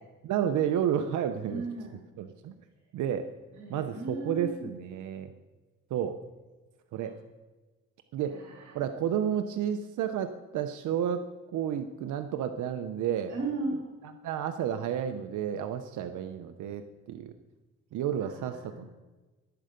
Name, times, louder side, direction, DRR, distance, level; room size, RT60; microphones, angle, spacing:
voice 1, 0.2-1.7 2.2-2.5 2.9-3.3 3.7-5.3 5.9-6.2 6.9-7.1 8.1-8.4 8.7-11.3 11.5-13.3 14.2-17.3 17.9-19.0, right 9 dB, 80° right, 8 dB, 0.8 m, -31 dB
voice 2, 1.4-2.0 3.5-4.7 7.0-7.1 8.2-8.8 13.3-13.9 18.2-18.9, right 2 dB, 60° right, 0 dB, 2.8 m, -37 dB
15.5 x 7.8 x 5.2 m, 1.2 s
cardioid pair, 90°, 30 cm